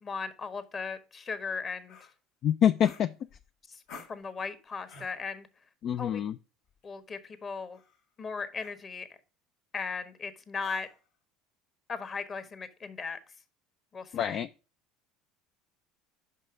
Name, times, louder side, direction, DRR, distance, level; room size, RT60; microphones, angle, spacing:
voice 1, 0.0-2.0 3.7-3.8 4.1-5.5 6.0-6.2 6.8-7.8 8.2-9.1 9.7-10.9 11.9-13.3 13.9-14.4, left 5 dB, 35° left, 1.2 m, -37 dB
sound 1, 1.9-2.1 2.8-3.5 3.9-4.2 4.9-5.2 6.7-6.9 7.7-8.0 8.6-8.8 10.6-11.1, left 4 dB, 70° left, 1.6 m, -50 dB
voice 2, 2.4-3.1 5.8-6.4 14.1-14.5, left 9 dB, 50° left, 0.3 m, -26 dB
5.6 x 5.5 x 4.8 m
hypercardioid pair, 75°, 0 cm